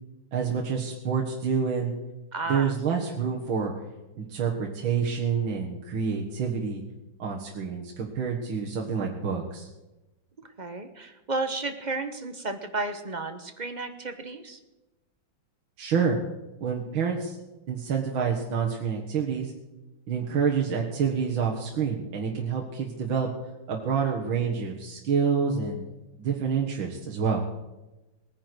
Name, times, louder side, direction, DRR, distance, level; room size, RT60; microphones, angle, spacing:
voice 1, 0.3-1.9 2.5-3.7 4.2-6.8 7.2-9.7 15.8-16.2 16.6-17.4 17.7-19.5 20.1-23.3 23.7-25.8 26.2-27.4, right 6 dB, 75° right, -1 dB, 2.3 m, -27 dB
voice 2, 2.3-2.7 10.6-14.6, right 3 dB, 25° right, 8 dB, 1.1 m, -32 dB
19.0 x 10.0 x 6.2 m, 1.0 s
omnidirectional pair, 2.2 m